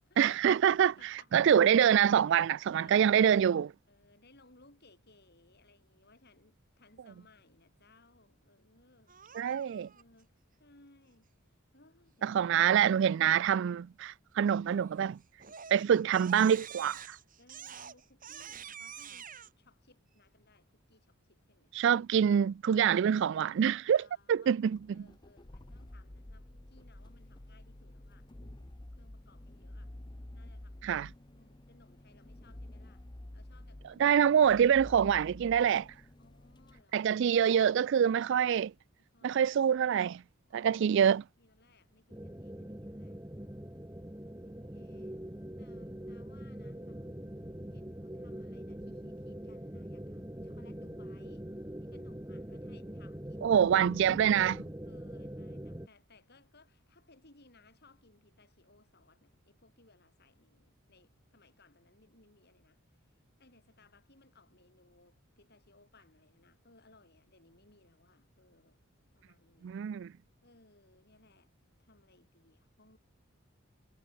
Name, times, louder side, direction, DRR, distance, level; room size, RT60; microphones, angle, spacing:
voice 1, 0.2-0.9 1.3-3.7 9.3-9.9 12.2-15.2 15.7-17.2 21.7-24.0 24.3-24.8 30.8-31.1 34.0-35.9 36.9-38.7 39.2-40.2 40.5-41.2 53.4-54.6 69.6-70.1, right 8 dB, 60° right, 0.3 m, -25 dB
voice 2, 0.9-1.6 2.7-3.2 3.7-9.5 9.8-10.3 10.6-12.4 13.2-13.7 14.3-14.7 17.4-21.7 23.9-24.6 24.9-29.9 30.3-33.1 33.3-34.2 36.2-37.1 37.6-37.8 39.0-39.5 40.5-40.7 41.4-43.8 44.4-45.2 45.6-47.1 47.7-51.5 51.8-53.6 54.8-68.8 69.1-69.9 70.4-73.0, left 2 dB, 50° left, 7.6 m, -64 dB
Crying sobbing, 9.1-10.0 14.7-15.0 15.4-19.5, right 8 dB, 40° right, 2.6 m, -47 dB
sound 1, 24.7-36.8, left 1 dB, 20° left, 0.9 m, -50 dB
sound 2, 42.1-55.9, equal, 15° right, 1.6 m, -43 dB
head